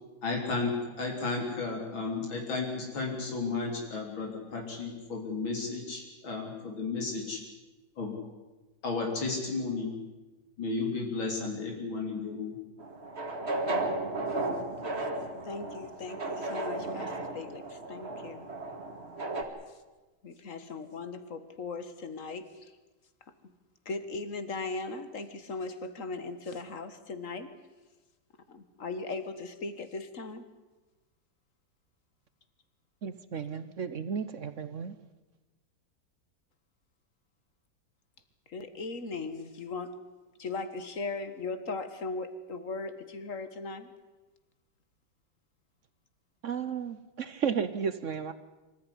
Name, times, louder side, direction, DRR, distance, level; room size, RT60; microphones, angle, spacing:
voice 1, 0.2-7.4 8.0-8.1 8.8-9.9 10.6-12.5, left 3 dB, 85° left, 1 dB, 4.3 m, -33 dB
sound 1, 12.8-19.4, right 2 dB, 35° right, 2.4 m, -34 dB
voice 2, 15.4-18.5 20.2-22.7 23.9-27.5 28.5-30.4 38.5-40.0 40.4-43.9, left 3 dB, 45° left, 11 dB, 1.8 m, -38 dB
voice 3, 33.0-34.9 46.4-48.3, right 7 dB, 50° right, 12 dB, 0.9 m, -33 dB
25.5 x 14.5 x 10.0 m, 1.2 s
omnidirectional pair, 2.1 m